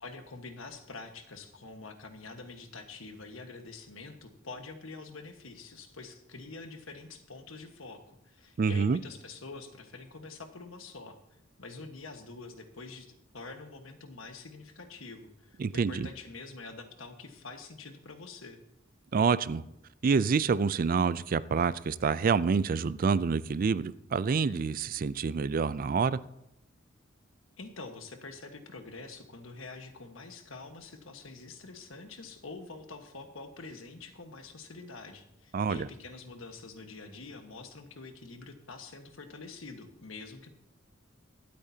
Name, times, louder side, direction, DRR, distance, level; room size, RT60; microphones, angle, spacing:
voice 1, 0.0-11.2 11.6-18.6 27.6-40.5, left 3 dB, 80° left, 6 dB, 1.4 m, -46 dB
voice 2, 8.6-9.0 15.6-16.1 19.1-19.6 20.0-26.2 35.5-35.9, right 5 dB, 45° right, 17 dB, 0.4 m, -27 dB
23.5 x 8.6 x 2.8 m, 0.86 s
head